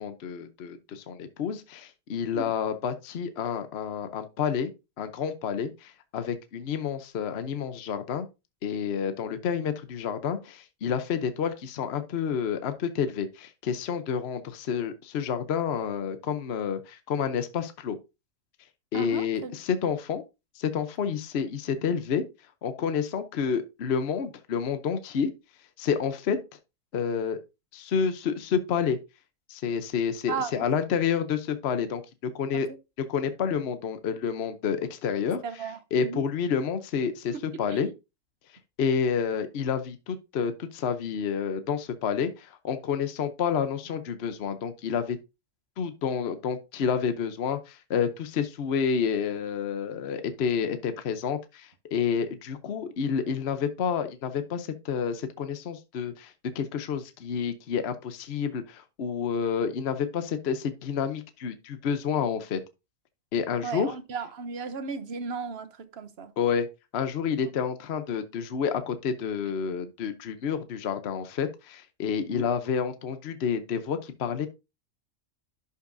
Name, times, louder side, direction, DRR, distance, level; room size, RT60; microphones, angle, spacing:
voice 1, 0.0-4.7 5.0-8.3 8.6-18.0 18.9-20.2 20.6-22.2 22.6-25.3 25.8-26.4 26.9-27.4 27.7-29.0 29.5-32.7 33.0-35.4 35.9-37.9 38.8-45.2 45.8-62.6 63.3-63.9 66.4-66.7 66.9-74.5, left 7 dB, 55° left, 1.0 m, -29 dB
voice 2, 18.9-19.6 30.3-30.5 35.4-36.2 37.7-37.9 63.6-66.3 72.3-72.5, right 5 dB, 55° right, 1.0 m, -35 dB
11.5 x 5.5 x 2.6 m
omnidirectional pair, 1.4 m